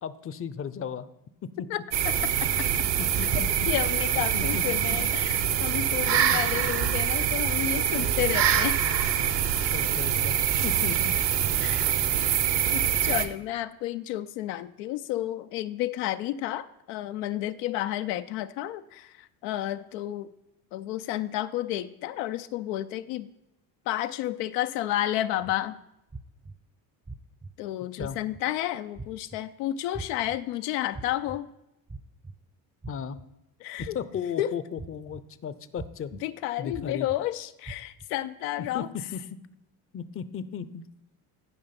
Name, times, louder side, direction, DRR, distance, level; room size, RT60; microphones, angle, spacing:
voice 1, 0.0-1.1 1.4-1.7 3.0-3.5 4.3-5.1 6.3-6.4 9.7-10.4 10.6-11.2 28.0-28.2 32.9-33.2 33.8-36.1 36.6-37.1 38.6-39.2 39.9-40.8, left 7 dB, 30° left, 15 dB, 0.6 m, -35 dB
voice 2, 1.7-2.7 3.7-8.8 11.6-11.9 12.2-12.4 12.7-20.3 20.7-23.3 23.9-25.8 27.6-31.5 33.6-34.0 34.4-34.5 36.2-38.9, left 13 dB, 80° left, 10 dB, 0.6 m, -31 dB
sound 1, 1.9-13.3, right 9 dB, 60° right, 1.0 m, -25 dB
sound 2, 25.4-25.5 26.1-26.5 27.1-27.5 28.0-28.4 29.0-29.4 29.9-30.4 30.9-31.4 31.9-32.3 32.8-33.2 33.8-34.2 34.8-35.2 35.8-36.2 36.7-37.2 37.7-38.1, right 3 dB, 15° right, 0.6 m, -40 dB
11.0 x 5.0 x 5.8 m, 0.88 s
supercardioid pair, 70°, 49 cm